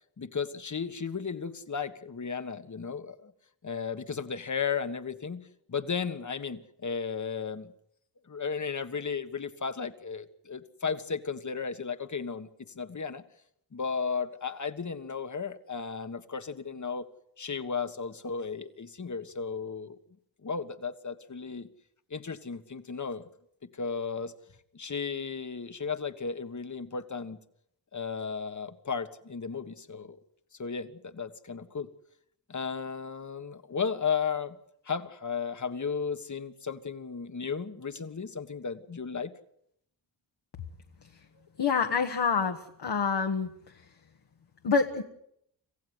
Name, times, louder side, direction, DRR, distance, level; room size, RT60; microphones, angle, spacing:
voice 1, 0.2-3.3 3.6-7.7 8.3-12.5 12.7-13.2 13.7-17.1 17.4-20.0 20.4-21.7 22.1-23.2 23.6-24.3 24.7-27.4 27.9-30.2 30.6-31.9 32.5-34.6 34.8-39.3, left 5 dB, 40° left, 11 dB, 1.6 m, -34 dB
voice 2, 41.6-43.5 44.6-45.0, left 5 dB, 65° left, 4 dB, 1.6 m, -27 dB
26.5 x 15.5 x 8.0 m, 0.74 s
cardioid pair, 65°, 44 cm